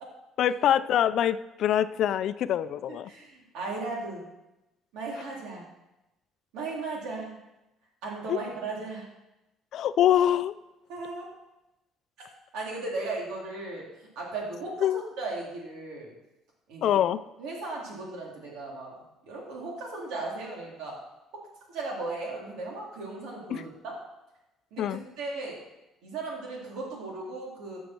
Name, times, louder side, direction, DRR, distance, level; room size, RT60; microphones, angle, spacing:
voice 1, 0.4-3.1 8.3-8.4 9.7-10.5 14.8-15.0 16.8-17.2 23.5-23.6 24.8-25.0, left 10 dB, 55° left, 14 dB, 0.4 m, -24 dB
voice 2, 3.1-4.2 4.9-5.7 6.5-7.3 8.0-9.1 10.9-11.2 12.5-13.8 14.2-14.9 15.2-16.1 16.7-17.0 17.4-18.9 19.3-21.0 21.7-23.9 24.7-25.6 26.0-27.8, right 3 dB, 85° right, -3 dB, 3.6 m, -36 dB
13.5 x 6.4 x 4.6 m, 0.97 s
cardioid pair, 135°, 0 cm